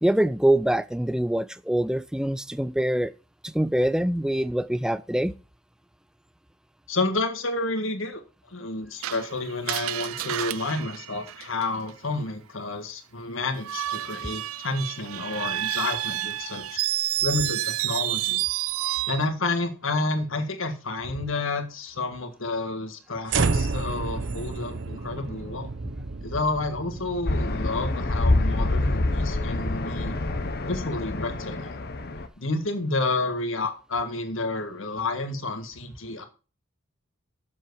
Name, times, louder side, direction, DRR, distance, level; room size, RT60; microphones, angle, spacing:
voice 1, 0.0-3.1 3.4-5.3, right 1 dB, 5° right, 0.3 m, -24 dB
voice 2, 6.9-8.2 8.5-16.8 17.2-18.4 19.1-25.7 26.2-30.2 30.6-31.7 32.4-36.2, left 2 dB, 70° left, 1.7 m, -30 dB
Screech, 9.0-11.9 13.6-19.3, right 15 dB, 85° right, 0.4 m, -30 dB
sound 1, 23.3-29.6, right 3 dB, 60° right, 0.7 m, -31 dB
sound 2, 27.3-32.3, left 2 dB, 50° left, 1.0 m, -26 dB
7.6 x 7.4 x 4.8 m
head